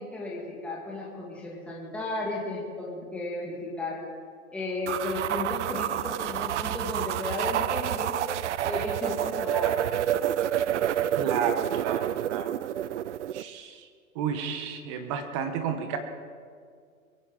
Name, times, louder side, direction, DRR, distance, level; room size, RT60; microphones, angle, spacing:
voice 1, 0.0-4.0 4.5-8.2 8.6-9.8, left 2 dB, 5° left, -4 dB, 2.0 m, -34 dB
sound 1, 4.9-13.4, right 11 dB, 55° right, 0.5 m, -28 dB
voice 2, 11.1-12.6 13.3-13.9 14.1-16.0, right 7 dB, 20° right, 8 dB, 0.9 m, -32 dB
22.5 x 15.5 x 3.7 m, 2.1 s
hypercardioid pair, 155°, 45 cm